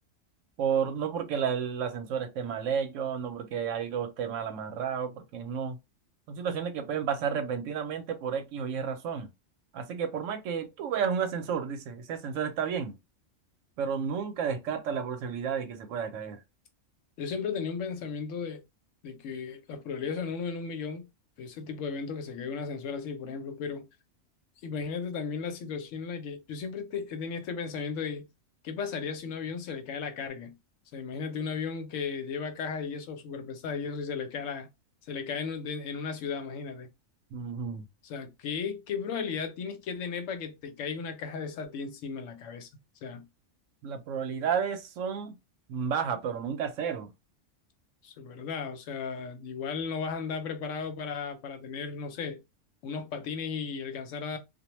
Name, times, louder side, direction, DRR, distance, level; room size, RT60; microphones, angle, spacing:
voice 1, 0.6-5.8 6.3-9.3 9.7-13.0 13.8-16.4 37.3-37.8 43.8-45.3 45.7-47.1, right 7 dB, 85° right, 0.9 m, -31 dB
voice 2, 17.2-18.6 19.0-21.1 21.4-23.9 24.6-28.3 28.6-30.6 30.9-34.7 35.1-36.9 38.0-42.7 43.0-43.3 48.0-52.4 52.8-54.4, left 5 dB, 85° left, 1.0 m, -35 dB
2.4 x 2.1 x 2.9 m
omnidirectional pair, 1.3 m